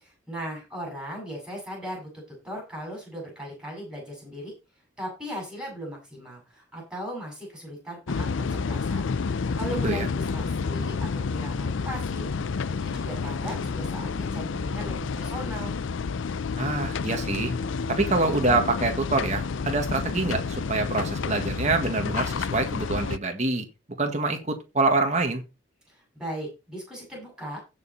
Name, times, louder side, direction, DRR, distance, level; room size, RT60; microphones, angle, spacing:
voice 1, 0.0-2.1 2.4-4.5 5.0-15.7 25.9-27.6, equal, 5° right, -1 dB, 7.5 m, -38 dB
sound 1, 8.1-23.2, left 5 dB, 65° left, 0.5 m, -29 dB
voice 2, 16.6-17.5 17.9-23.6 24.0-25.4, right 3 dB, 35° right, 4 dB, 1.7 m, -26 dB
16.0 x 5.4 x 4.2 m, 0.27 s
head